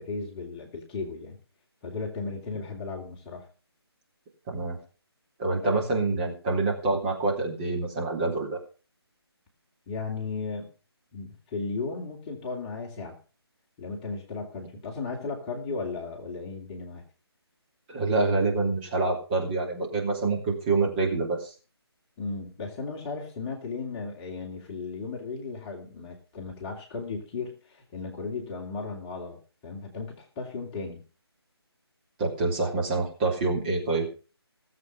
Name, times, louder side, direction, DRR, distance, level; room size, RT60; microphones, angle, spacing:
voice 1, 0.0-1.4 1.8-3.5 5.6-5.8 9.9-10.7 11.1-13.2 13.8-17.0 22.2-31.0, left 4 dB, 20° left, -1 dB, 2.8 m, -35 dB
voice 2, 4.5-4.8 5.4-8.6 17.9-21.5 32.2-34.1, right 3 dB, 20° right, -1 dB, 3.0 m, -26 dB
18.5 x 7.9 x 5.6 m, 0.36 s
figure-of-eight pair, 155°, 14 cm